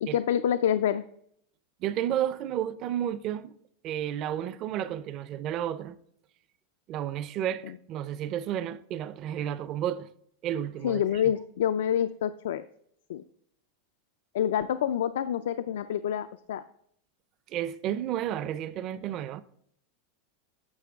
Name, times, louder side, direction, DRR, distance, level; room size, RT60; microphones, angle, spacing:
voice 1, 0.0-1.0 10.8-12.6 13.1-13.2 14.3-16.6, left 9 dB, 85° left, 0.4 m, -27 dB
voice 2, 1.8-3.6 3.8-6.0 6.9-10.1 10.4-11.0 17.5-19.4, right 11 dB, 30° right, 0.4 m, -32 dB
9.5 x 6.3 x 3.5 m
supercardioid pair, 175°, 0 cm